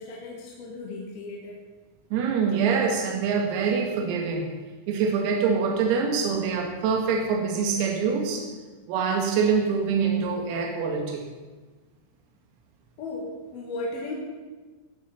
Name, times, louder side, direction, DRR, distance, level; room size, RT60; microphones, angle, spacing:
voice 1, 0.0-1.6 13.0-14.1, left 2 dB, 60° left, -1 dB, 3.1 m, -35 dB
voice 2, 2.1-4.5 4.9-8.5 8.9-11.3, right 5 dB, 90° right, 2 dB, 4.7 m, -25 dB
18.0 x 10.0 x 7.1 m, 1.3 s
omnidirectional pair, 5.9 m